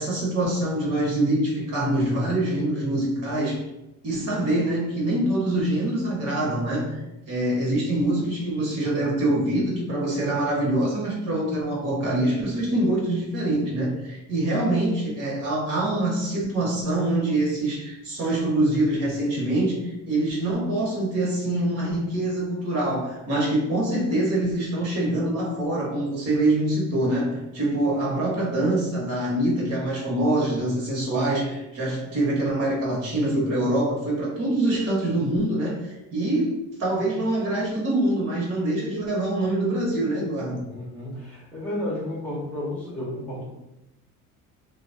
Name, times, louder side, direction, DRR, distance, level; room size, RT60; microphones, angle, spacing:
voice 1, 0.0-3.6 4.0-40.6, right 1 dB, 55° right, -4 dB, 1.2 m, -25 dB
voice 2, 40.7-43.5, left 1 dB, 5° left, -7 dB, 0.8 m, -32 dB
2.9 x 2.3 x 3.8 m, 0.93 s
cardioid pair, 170°, 31 cm